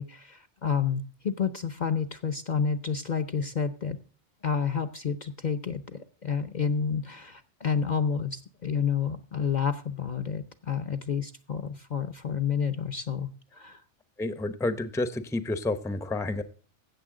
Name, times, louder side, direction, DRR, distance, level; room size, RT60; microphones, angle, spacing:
voice 1, 0.0-4.0 4.4-13.8, left 6 dB, 45° left, 9 dB, 0.7 m, -30 dB
voice 2, 14.2-16.4, left 2 dB, 5° left, 12 dB, 0.6 m, -30 dB
16.0 x 7.0 x 3.7 m, 0.41 s
omnidirectional pair, 1.2 m